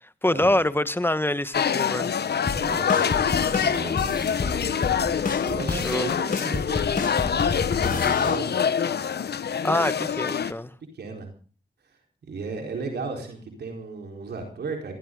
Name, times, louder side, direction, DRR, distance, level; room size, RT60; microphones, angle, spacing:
voice 1, 0.2-2.2 5.7-6.1 9.6-10.7, left 1 dB, 15° left, 1.5 m, -25 dB
sound 1, 1.5-10.5, left 7 dB, 80° left, 1.1 m, -25 dB
voice 2, 2.4-4.4 5.4-8.7 10.9-11.3 12.2-14.9, right 4 dB, 90° right, 4.5 m, -35 dB
sound 2, 2.5-8.4, left 4 dB, 55° left, 1.5 m, -30 dB
22.0 x 16.5 x 3.9 m
cardioid pair, 45°, 17 cm